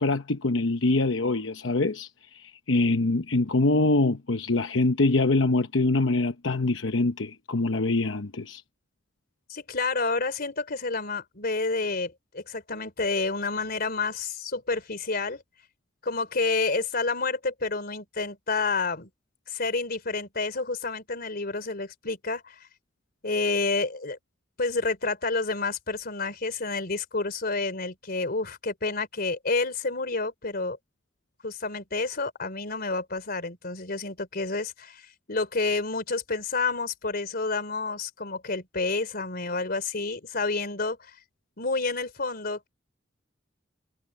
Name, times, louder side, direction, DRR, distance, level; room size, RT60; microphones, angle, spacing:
voice 1, 0.0-8.6, left 2 dB, 85° left, 0.9 m, -24 dB
voice 2, 9.5-15.4 16.0-19.1 19.5-22.6 23.2-24.2 24.6-30.8 31.4-41.0 41.6-42.7, left 3 dB, 55° left, 3.5 m, -29 dB
head